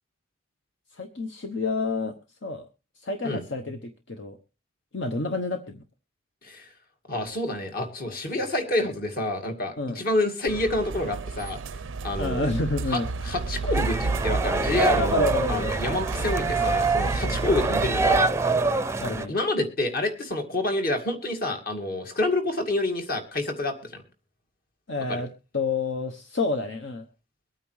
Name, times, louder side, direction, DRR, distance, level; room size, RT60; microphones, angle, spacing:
voice 1, 0.9-2.1 2.4-2.7 3.0-4.4 4.9-5.8 9.8-10.0 12.2-13.1 14.9-15.7 16.4-16.6 17.2-17.5 19.0-19.3 24.9-27.0, left 3 dB, 65° left, 6 dB, 1.0 m, -29 dB
voice 2, 7.1-11.6 12.0-12.5 12.9-18.6 19.3-24.0 25.1-25.2, left 2 dB, 50° left, 4 dB, 2.2 m, -28 dB
sound 1, 10.5-18.2, right 4 dB, 85° right, 0.5 m, -31 dB
sound 2, 13.7-19.3, right 3 dB, 15° right, 0.5 m, -25 dB
23.0 x 9.0 x 3.2 m, 0.30 s
head